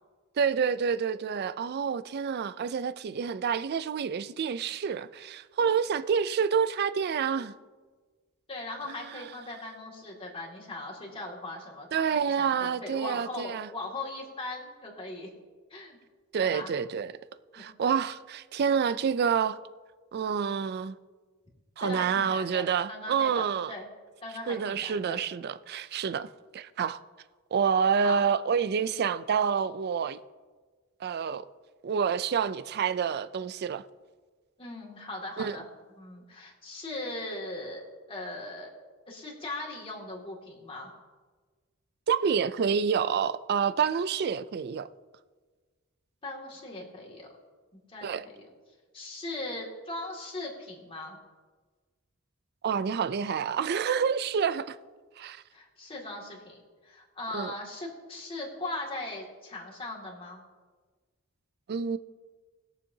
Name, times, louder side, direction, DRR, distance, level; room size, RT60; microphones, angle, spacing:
voice 1, 0.4-7.5 8.9-9.3 11.9-13.7 16.3-17.1 17.5-19.6 20.1-21.0 21.8-23.7 24.5-26.3 26.5-27.0 27.5-30.2 31.0-31.5 31.8-33.8 35.4-35.6 42.1-44.9 48.0-48.3 52.6-54.8 55.2-55.4 57.3-57.5 61.7-62.0, right 7 dB, 50° right, 0.4 m, -28 dB
voice 2, 8.5-15.3 15.7-16.0 16.4-16.7 17.6-17.7 21.8-23.9 24.2-25.2 28.0-28.2 34.6-37.8 38.1-38.7 39.1-40.9 46.2-47.3 47.9-48.5 48.9-51.2 55.5-60.4, left 2 dB, 25° left, 2.2 m, -39 dB
20.5 x 7.1 x 2.8 m
head